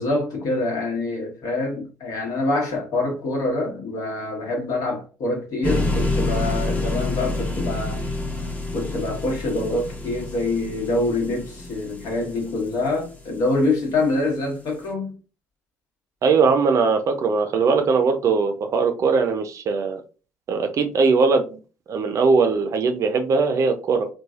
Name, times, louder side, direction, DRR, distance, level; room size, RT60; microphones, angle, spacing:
voice 1, 0.0-8.0 8.7-15.2, left 2 dB, 60° left, 1.2 m, -25 dB
sound 1, 5.6-13.7, left 2 dB, 20° left, 0.9 m, -28 dB
voice 2, 16.2-20.0 20.5-21.6 21.9-24.1, right 4 dB, 50° right, 0.5 m, -20 dB
3.2 x 2.3 x 2.3 m
hypercardioid pair, 60°, 7 cm